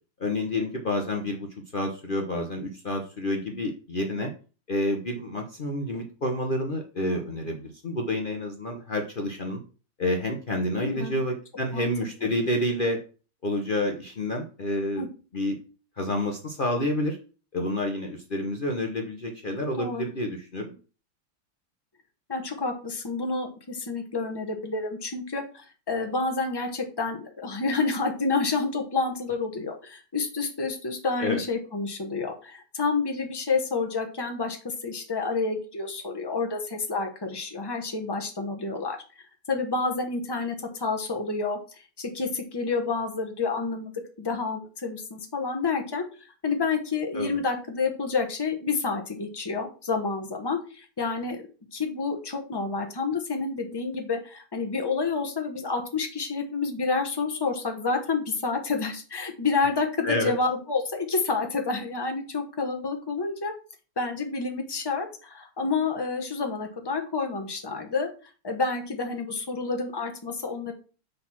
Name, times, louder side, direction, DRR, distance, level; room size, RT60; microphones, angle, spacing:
voice 1, 0.2-4.3 4.7-9.6 10.0-13.0 13.4-15.1 15.3-15.6 16.0-17.2 17.5-20.7 31.2-31.4 47.1-47.4 60.0-60.3, left 1 dB, 70° left, 2 dB, 0.5 m, -29 dB
voice 2, 10.8-11.1 11.7-11.9 15.0-15.1 19.7-20.1 22.3-39.0 39.5-43.9 44.2-51.4 51.7-63.5 64.0-68.1 68.4-70.7, left 4 dB, 20° left, 3 dB, 0.6 m, -29 dB
6.6 x 4.0 x 5.9 m, 0.37 s
omnidirectional pair, 2.4 m